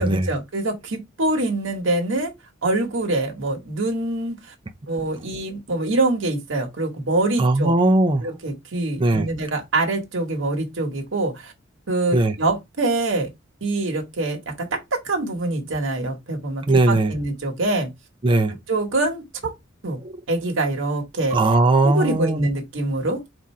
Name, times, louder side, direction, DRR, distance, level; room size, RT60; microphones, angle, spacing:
voice 1, 0.0-2.3 2.6-4.5 4.9-7.7 8.2-11.5 11.9-13.3 13.6-17.9 18.7-19.5 19.8-20.0 20.3-21.4 21.8-23.2, right 2 dB, 70° right, 1.1 m, -25 dB
voice 2, 7.4-8.2 9.0-9.3 12.1-12.3 16.7-17.1 18.2-18.5 21.3-22.5, right 2 dB, 25° right, 0.5 m, -18 dB
3.6 x 2.6 x 4.2 m
head